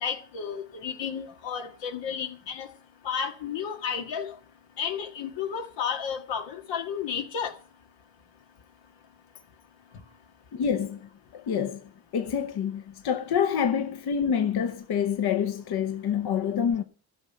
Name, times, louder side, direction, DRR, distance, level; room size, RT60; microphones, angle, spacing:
voice 1, 0.0-2.7 3.0-4.3 4.8-7.5, left 7 dB, 85° left, 2.0 m, -32 dB
voice 2, 10.5-16.8, left 7 dB, 60° left, 1.0 m, -27 dB
12.5 x 6.6 x 9.0 m
cardioid pair, 85°, 43 cm